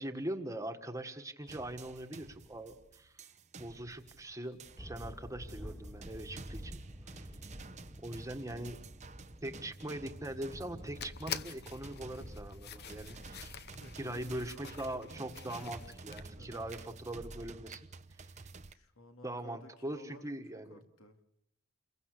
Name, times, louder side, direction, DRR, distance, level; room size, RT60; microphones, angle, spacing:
voice 1, 0.0-3.2 3.6-6.8 7.1-7.3 8.0-8.8 9.4-13.6 14.0-17.8 19.2-20.8, right 1 dB, 15° right, 5 dB, 1.6 m, -42 dB
sound 1, 1.5-18.7, right 3 dB, 30° right, 0.9 m, -51 dB
sound 2, 4.8-16.4, equal, 10° left, 2.2 m, -51 dB
sound 3, 10.8-16.2, left 8 dB, 50° left, 1.0 m, -46 dB
voice 2, 13.8-15.2 16.4-16.6 18.6-20.3 20.7-21.2, equal, 70° left, 5 dB, 3.0 m, -55 dB
29.0 x 22.5 x 6.7 m, 0.76 s
head